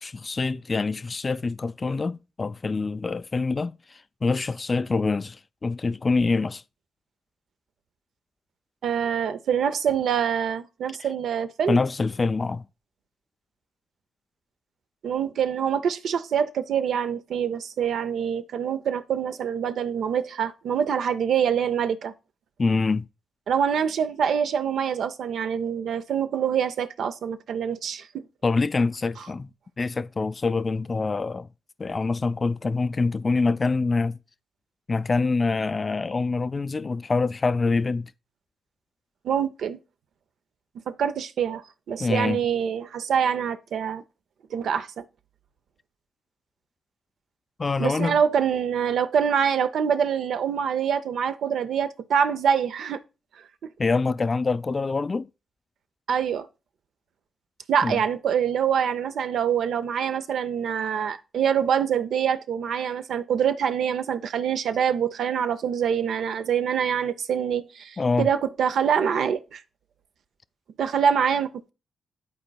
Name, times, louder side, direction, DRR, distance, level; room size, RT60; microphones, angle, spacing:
voice 1, 0.0-6.6 11.7-12.6 22.6-23.1 28.4-29.5 29.8-31.5 31.8-34.2 34.9-38.1 42.0-42.4 47.6-48.2 53.8-55.3 57.8-58.0 68.0-68.3, left 3 dB, 40° left, 0.3 m, -25 dB
voice 2, 8.8-11.8 15.0-22.1 23.5-28.1 39.2-39.8 40.9-44.0 44.5-45.0 47.8-53.0 56.1-56.5 57.7-69.6 70.8-71.7, right 7 dB, 75° right, 0.5 m, -25 dB
11.5 x 4.2 x 2.3 m
supercardioid pair, 60°, 0 cm